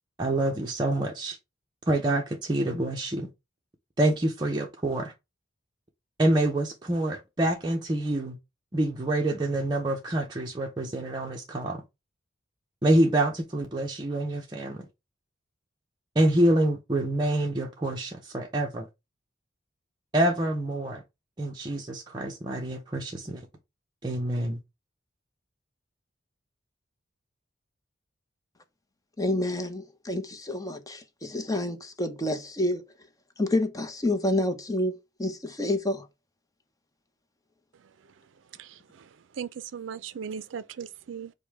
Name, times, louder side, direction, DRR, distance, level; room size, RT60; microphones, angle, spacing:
voice 1, 0.2-1.4 1.9-3.3 4.0-5.1 6.2-8.4 8.7-11.8 12.8-14.9 16.2-18.9 20.1-21.0 21.4-23.4 24.0-24.6, right 1 dB, 20° right, 0.7 m, -26 dB
voice 2, 29.2-32.9 33.4-36.1, left 1 dB, 20° left, 0.7 m, -28 dB
voice 3, 37.7-38.1 38.5-41.3, right 7 dB, 70° right, 0.4 m, -39 dB
5.2 x 2.1 x 4.6 m
head